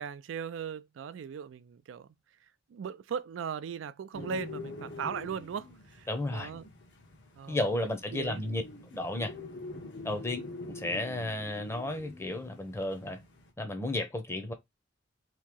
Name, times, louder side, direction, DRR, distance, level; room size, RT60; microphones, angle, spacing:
voice 1, 0.0-2.1 2.7-6.7 7.4-7.6 8.1-8.4 10.1-10.3, right 7 dB, 90° right, 0.3 m, -38 dB
sound 1, 4.1-13.5, left 2 dB, 65° left, 1.0 m, -45 dB
voice 2, 6.1-6.5 7.5-8.6 8.9-9.3 10.0-10.4 10.7-13.2 13.6-14.5, left 1 dB, 15° left, 0.6 m, -33 dB
3.0 x 2.7 x 3.6 m
head